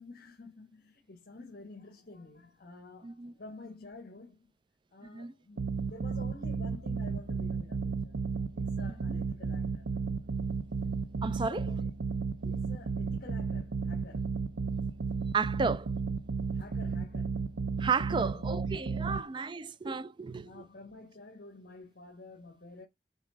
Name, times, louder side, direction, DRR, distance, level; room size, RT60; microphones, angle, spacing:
voice 1, 0.0-4.4 4.9-9.9 11.3-11.9 12.5-14.3 16.5-17.5 18.0-18.4 19.0-19.3 20.4-22.9, left 3 dB, 55° left, 1.5 m, -50 dB
voice 2, 3.0-3.3 5.1-5.3 8.9-9.2 11.2-11.7 12.4-12.5 15.3-15.9 17.8-20.6, right 5 dB, 25° right, 0.4 m, -33 dB
sound 1, 5.6-19.2, right 5 dB, 85° right, 0.7 m, -33 dB
6.3 x 4.2 x 5.1 m
head